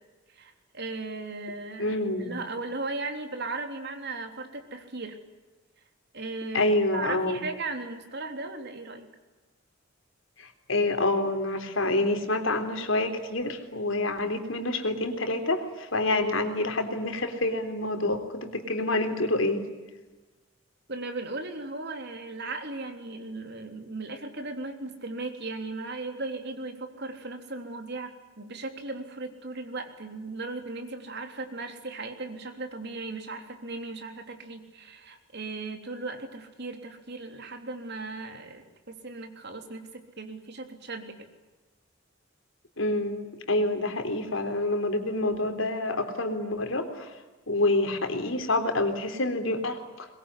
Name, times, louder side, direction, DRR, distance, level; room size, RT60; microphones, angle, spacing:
voice 1, 0.3-5.2 6.1-9.1 20.9-41.3, right 3 dB, 55° right, 5 dB, 3.5 m, -37 dB
voice 2, 1.8-2.4 6.5-7.4 10.4-19.6 42.8-47.2 47.5-50.1, left 2 dB, 80° left, 7 dB, 3.7 m, -27 dB
22.5 x 22.0 x 9.9 m, 1.2 s
head